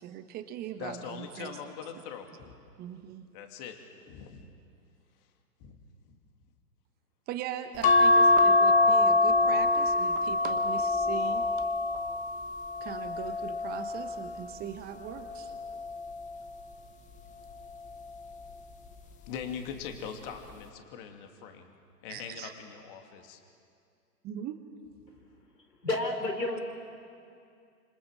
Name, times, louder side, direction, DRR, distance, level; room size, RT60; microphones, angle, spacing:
voice 1, 0.0-1.6 2.8-3.3 7.3-11.5 12.8-15.5 22.1-22.5 24.2-24.6, right 10 dB, 20° right, 8 dB, 1.0 m, -40 dB
voice 2, 0.8-2.5 3.3-3.8 4.1-4.5 5.6-5.8 19.3-21.7 22.0-23.4, left 7 dB, 35° left, 5 dB, 2.6 m, -41 dB
sound 1, 7.8-14.4 15.1-16.5 17.7-18.2 18.5-18.6, left 2 dB, 15° left, 1.1 m, -25 dB
voice 3, 25.8-26.6, left 2 dB, 90° left, 4 dB, 4.6 m, -30 dB
26.5 x 26.5 x 7.5 m, 2.4 s
hypercardioid pair, 125°, 48 cm